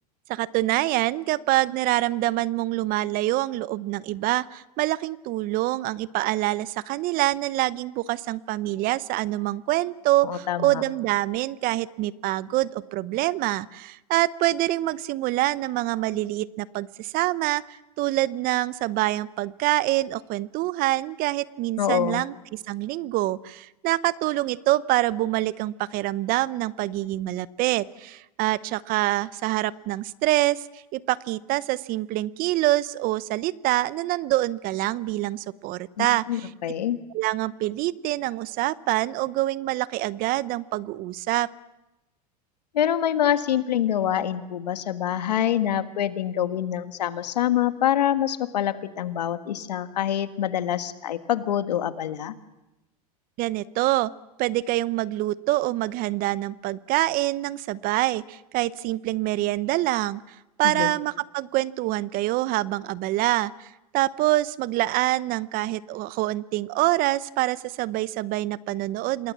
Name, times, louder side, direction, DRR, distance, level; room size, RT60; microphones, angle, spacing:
voice 1, 0.3-17.6 18.0-36.5 37.1-41.5 53.4-54.1 54.4-60.2 60.6-69.3, right 17 dB, 45° right, 18 dB, 0.8 m, -26 dB
voice 2, 10.2-10.8 21.8-22.2 36.0-37.0 42.7-52.3 60.6-60.9, left 10 dB, 85° left, 10 dB, 1.6 m, -25 dB
27.5 x 20.5 x 7.4 m, 0.99 s
hypercardioid pair, 110°, 20 cm